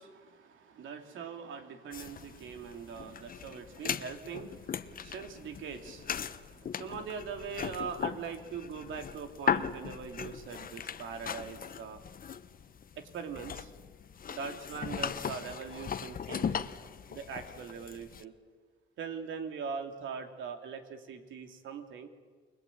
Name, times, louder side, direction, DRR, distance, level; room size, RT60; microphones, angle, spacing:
voice 1, 0.0-12.0 13.0-13.7 14.3-16.6 17.1-18.3 19.0-22.1, right 6 dB, 75° right, 5 dB, 3.1 m, -42 dB
sound 1, 1.9-18.2, left 7 dB, 45° left, 1.2 m, -38 dB
29.5 x 22.5 x 8.8 m, 1.5 s
cardioid pair, 90°, 20 cm